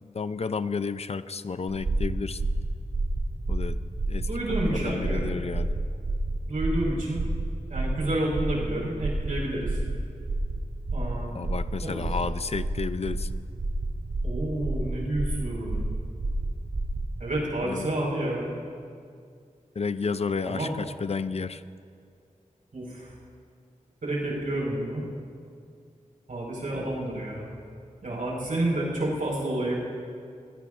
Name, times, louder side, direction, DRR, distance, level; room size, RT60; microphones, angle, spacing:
voice 1, 0.0-2.4 3.5-3.8 4.1-4.3 4.7-5.7 11.3-13.3 17.6-17.9 19.8-21.6, left 5 dB, 50° left, 13 dB, 0.5 m, -31 dB
sound 1, 1.7-17.1, right 2 dB, 70° right, 2.3 m, -30 dB
voice 2, 4.3-5.2 6.5-7.2 7.7-9.8 10.9-11.4 11.8-12.0 14.2-15.8 17.2-18.5 20.4-20.7 22.7-23.1 24.0-25.0 26.3-27.5 28.0-29.8, right 1 dB, 90° right, -4 dB, 4.8 m, -29 dB
22.5 x 20.5 x 2.5 m, 2.3 s
wide cardioid pair, 85°, 13 cm